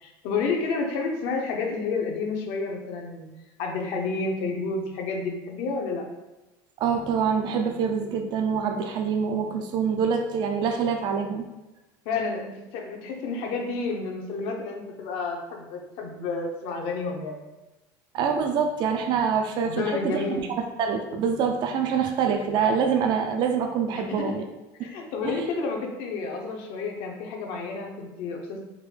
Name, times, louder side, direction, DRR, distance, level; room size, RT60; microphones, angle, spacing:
voice 1, 0.0-3.3 3.6-6.1 12.0-17.4 19.6-20.4 23.9-24.3 24.8-28.7, left 4 dB, 75° left, 2 dB, 0.7 m, -30 dB
voice 2, 6.8-11.4 18.1-20.2 20.8-24.4 24.8-24.9 25.2-25.4, right 6 dB, 50° right, 4 dB, 0.4 m, -25 dB
3.6 x 2.2 x 3.2 m, 1.0 s
supercardioid pair, 110°, 10 cm